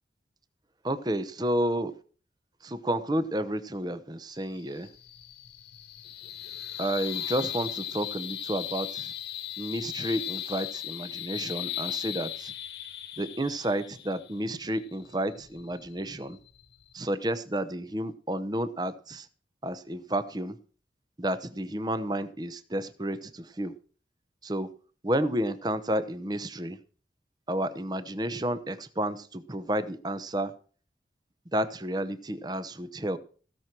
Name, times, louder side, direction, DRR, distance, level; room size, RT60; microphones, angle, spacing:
voice 1, 0.8-1.9 2.6-4.9 6.8-9.1 9.6-12.5 13.2-16.4 16.9-19.3 19.6-20.5 21.2-23.7 24.4-24.7 25.0-26.8 27.5-30.5 31.5-33.2, right 1 dB, 25° right, 13 dB, 0.7 m, -31 dB
sound 1, 4.3-16.9, left 11 dB, 70° left, 1.2 m, -38 dB
16.0 x 6.0 x 6.0 m, 0.42 s
head